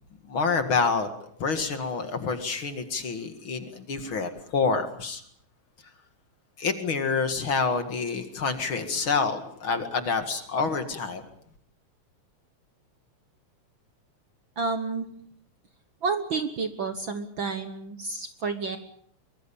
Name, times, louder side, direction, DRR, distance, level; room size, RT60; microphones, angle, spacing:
voice 1, 0.3-1.1 1.4-5.2 6.6-11.2, left 4 dB, 45° left, 8 dB, 2.5 m, -27 dB
voice 2, 14.6-15.0 16.0-18.8, right 4 dB, 50° right, 8 dB, 1.6 m, -30 dB
24.0 x 22.5 x 7.1 m, 0.65 s
omnidirectional pair, 3.3 m